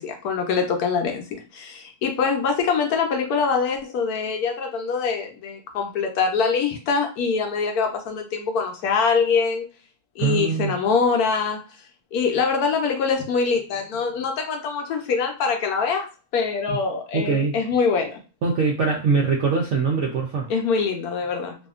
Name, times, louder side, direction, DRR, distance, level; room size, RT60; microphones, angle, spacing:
voice 1, 0.0-9.6 10.2-11.6 12.1-18.2 20.5-21.6, left 5 dB, 70° left, 1.1 m, -24 dB
voice 2, 10.2-10.8 17.1-17.6 18.4-20.5, right 4 dB, 70° right, 0.7 m, -22 dB
2.7 x 2.5 x 2.3 m
omnidirectional pair, 1.7 m